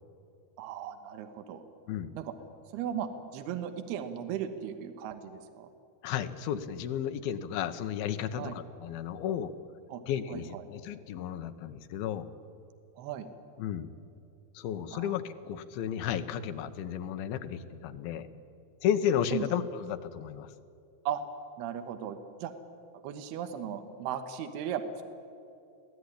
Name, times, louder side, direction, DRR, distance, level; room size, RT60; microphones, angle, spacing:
voice 1, 0.6-1.6 2.1-2.3 2.7-5.7 8.4-8.6 9.9-10.0 10.3-10.6 13.0-13.3 14.9-15.2 19.3-19.4 21.1-21.2 21.6-22.5 23.0-25.0, right 9 dB, 75° right, 7 dB, 3.1 m, -37 dB
voice 2, 6.0-9.5 10.1-12.3 13.6-13.9 14.5-18.3 18.8-20.5, left 9 dB, 75° left, 9 dB, 2.6 m, -33 dB
24.0 x 16.0 x 10.0 m, 2.5 s
omnidirectional pair, 4.8 m